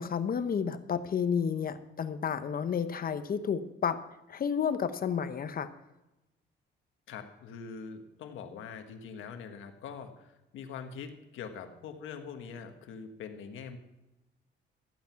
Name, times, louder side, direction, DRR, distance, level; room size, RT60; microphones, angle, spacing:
voice 1, 0.0-4.0 4.3-5.7, left 7 dB, 50° left, 11 dB, 0.9 m, -31 dB
voice 2, 7.1-13.8, left 6 dB, 85° left, 6 dB, 1.5 m, -43 dB
14.0 x 9.2 x 5.8 m, 0.97 s
cardioid pair, 90°, 20 cm